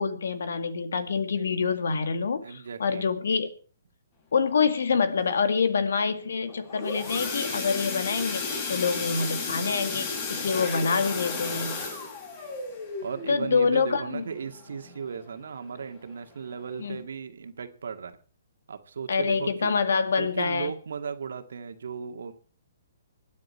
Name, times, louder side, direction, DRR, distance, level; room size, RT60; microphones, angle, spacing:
voice 1, 0.0-3.5 4.3-11.8 13.3-14.2 16.8-17.0 19.1-20.7, left 5 dB, 70° left, 10 dB, 1.9 m, -26 dB
voice 2, 2.4-3.2 13.0-18.2 18.7-19.8 20.2-22.3, right 6 dB, 70° right, 8 dB, 1.9 m, -36 dB
sound 1, 6.5-15.2 15.6-15.8 16.1-16.2 16.7-16.8, left 4 dB, 40° left, 6.3 m, -34 dB
25.0 x 9.6 x 4.4 m, 0.40 s
hypercardioid pair, 135°, 0 cm